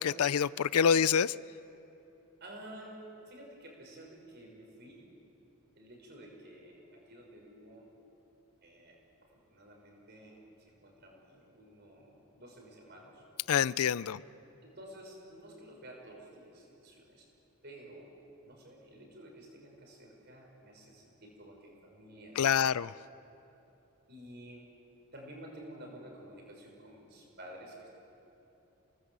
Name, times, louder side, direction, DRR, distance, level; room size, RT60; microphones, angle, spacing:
voice 1, 0.0-1.3 13.5-14.2 22.4-22.9, left 7 dB, 85° left, 0.4 m, -26 dB
voice 2, 2.4-5.2 5.7-7.9 8.6-13.2 14.1-14.3 14.6-17.3 17.6-18.1 18.4-22.8 24.1-24.7 25.1-27.9, right 1 dB, 50° right, 6.1 m, -51 dB
29.0 x 19.5 x 8.1 m
head